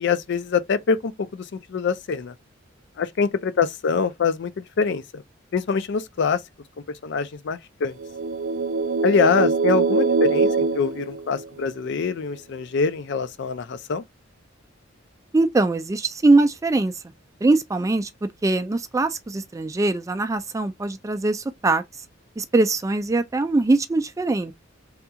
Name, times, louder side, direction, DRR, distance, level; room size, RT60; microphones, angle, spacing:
voice 1, 0.0-2.3 3.0-4.5 4.8-5.2 5.5-6.4 7.0-7.9 9.0-14.0, left 5 dB, 60° left, 0.4 m, -24 dB
sound 1, 8.0-11.8, right 4 dB, 75° right, 0.6 m, -23 dB
voice 2, 15.3-17.0 17.4-18.1 18.4-21.8 22.4-24.5, right 2 dB, 15° right, 0.3 m, -22 dB
3.5 x 2.3 x 2.8 m
head